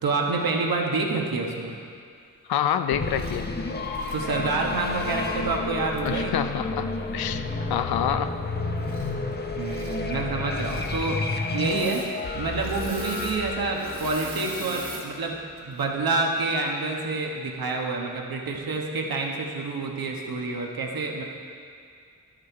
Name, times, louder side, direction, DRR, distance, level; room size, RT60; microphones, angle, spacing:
voice 1, 0.0-1.7 4.1-6.3 9.5-21.2, right 3 dB, 75° right, 0 dB, 1.3 m, -28 dB
voice 2, 2.5-3.5 6.0-8.3, left 9 dB, 85° left, 10 dB, 0.5 m, -27 dB
sound 1, 2.9-15.6, left 3 dB, 25° left, 0.7 m, -31 dB
Engine / Mechanisms, 3.1-3.4 3.9-5.2 6.0-6.1 8.8-9.3 9.6-10.0 10.6-11.0 11.5-12.1 12.4-15.1 15.6-15.9, right 2 dB, 35° right, 1.5 m, -40 dB
11.5 x 6.5 x 4.6 m, 2.3 s
cardioid pair, 70°, 36 cm